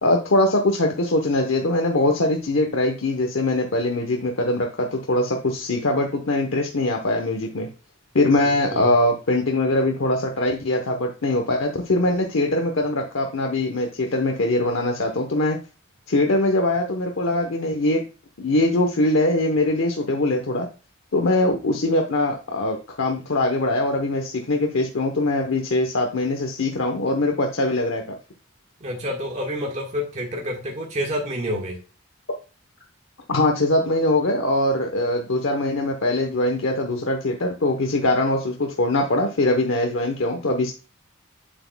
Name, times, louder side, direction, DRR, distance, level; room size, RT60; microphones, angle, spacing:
voice 1, 0.0-7.7 8.1-15.6 16.1-18.0 18.4-20.7 21.1-28.0 33.3-40.7, left 2 dB, 80° left, 3 dB, 0.9 m, -22 dB
voice 2, 8.4-8.9 28.8-31.8, equal, 35° right, -1 dB, 1.6 m, -28 dB
7.4 x 7.1 x 2.3 m, 0.33 s
head